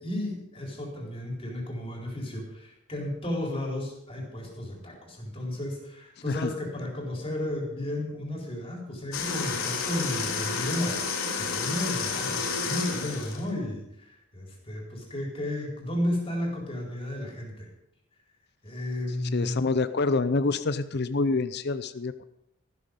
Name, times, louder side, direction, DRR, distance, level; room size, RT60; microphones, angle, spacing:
voice 1, 0.0-17.7 18.6-19.6, left 1 dB, 25° left, 0 dB, 4.1 m, -33 dB
sound 1, 9.1-13.4, left 5 dB, 80° left, 2.9 m, -30 dB
voice 2, 19.3-22.2, left 3 dB, 50° left, 12 dB, 0.6 m, -27 dB
14.5 x 13.0 x 5.3 m, 0.77 s
head